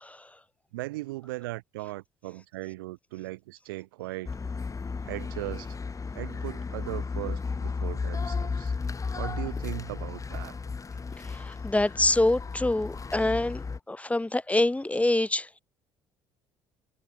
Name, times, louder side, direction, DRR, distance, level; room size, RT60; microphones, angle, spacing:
voice 1, 0.7-4.3 5.0-5.8 6.1-8.7 9.2-10.6, right 19 dB, 80° right, 3.9 m, -38 dB
sound 1, 4.3-13.8, left 4 dB, 30° left, 3.0 m, -34 dB
voice 2, 11.3-15.6, left 2 dB, 10° left, 4.6 m, -26 dB
hypercardioid pair, 55°, 11 cm